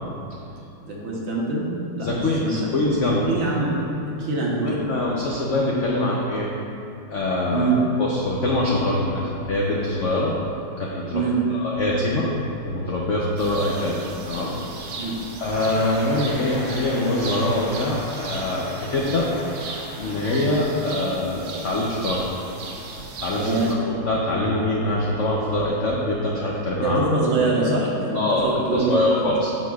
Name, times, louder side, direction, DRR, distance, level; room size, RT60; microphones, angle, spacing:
voice 1, 0.8-1.7 2.0-2.5 3.3-3.7 4.2-4.8 7.5-7.8 11.1-11.4 15.0-15.2 23.4-23.7 26.8-29.0, right 3 dB, 80° right, -4 dB, 1.9 m, -24 dB
voice 2, 2.0-3.2 4.6-6.5 7.1-7.7 8.0-10.3 10.8-12.3 12.6-14.0 14.3-14.5 14.8-15.1 15.4-18.6 18.9-19.3 20.0-22.2 23.2-27.0 28.1-28.4 28.7-29.5, left 2 dB, 80° left, -4 dB, 0.6 m, -24 dB
sound 1, 13.4-23.7, right 3 dB, 65° right, 1.1 m, -37 dB
sound 2, 15.5-20.8, left 1 dB, 50° left, 1.4 m, -38 dB
9.5 x 6.3 x 2.3 m, 2.7 s
omnidirectional pair, 2.1 m